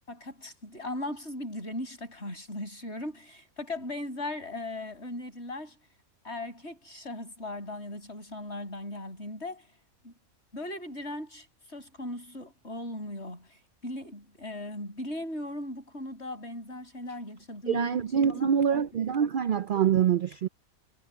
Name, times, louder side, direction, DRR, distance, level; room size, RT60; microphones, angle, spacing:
voice 1, 0.1-5.8 6.2-9.7 10.0-10.1 10.5-17.9 18.2-18.8, left 1 dB, 50° left, 7.8 m, -38 dB
voice 2, 17.7-20.5, right 8 dB, 70° right, 0.5 m, -25 dB
omnidirectional pair, 1.4 m